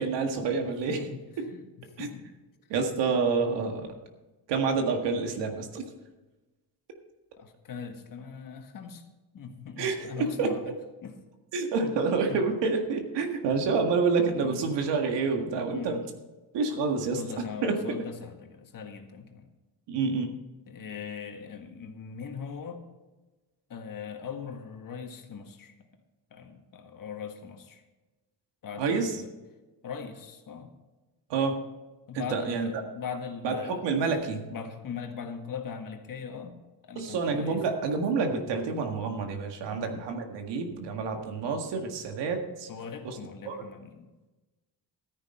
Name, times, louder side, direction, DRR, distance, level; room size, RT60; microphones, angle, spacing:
voice 1, 0.0-1.1 1.4-1.5 2.0-2.1 2.7-3.9 4.5-5.8 9.8-10.5 11.5-16.0 16.5-18.0 19.9-20.3 28.8-29.2 31.3-31.6 32.1-32.8 33.4-34.5 37.0-42.7 43.0-43.2 43.5-43.6, right 4 dB, 85° right, 4 dB, 1.8 m, -28 dB
voice 2, 0.6-2.2 7.4-9.0 9.3-10.6 11.0-11.1 11.8-12.0 12.3-12.4 14.4-14.6 15.5-16.1 17.1-19.5 20.6-22.8 23.7-25.9 26.3-27.8 28.6-29.3 29.8-30.7 32.1-33.9 34.5-36.6 36.8-37.6 39.7-40.0 42.7-44.1, left 6 dB, 50° left, 5 dB, 1.7 m, -40 dB
13.5 x 9.8 x 4.4 m, 1.1 s
cardioid pair, 110°, 41 cm